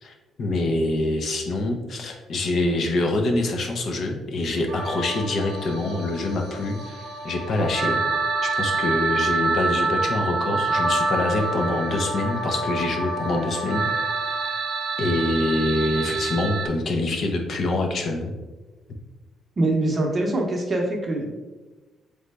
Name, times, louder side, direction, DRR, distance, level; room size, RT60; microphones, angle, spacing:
voice 1, 0.0-8.0 8.4-13.9 14.2-14.4 15.0-18.3, left 2 dB, 50° left, 3 dB, 0.5 m, -25 dB
sound 1, 4.7-16.7, right 3 dB, 80° right, 0.7 m, -27 dB
voice 2, 19.6-21.4, right 2 dB, 25° right, 1 dB, 0.7 m, -24 dB
3.8 x 3.2 x 3.3 m, 1.2 s
cardioid pair, 145°, 0 cm